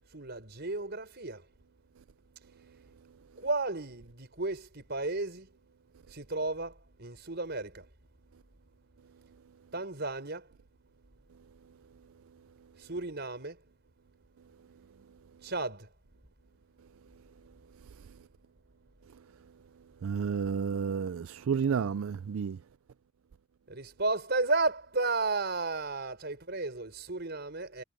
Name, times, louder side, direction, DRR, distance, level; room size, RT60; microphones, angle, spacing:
voice 1, 0.1-1.4 3.4-5.5 6.1-7.8 9.7-10.5 12.8-13.6 15.4-15.9 23.7-27.8, right 3 dB, 55° right, 5.1 m, -33 dB
voice 2, 20.0-22.6, right 6 dB, 85° right, 0.4 m, -31 dB
head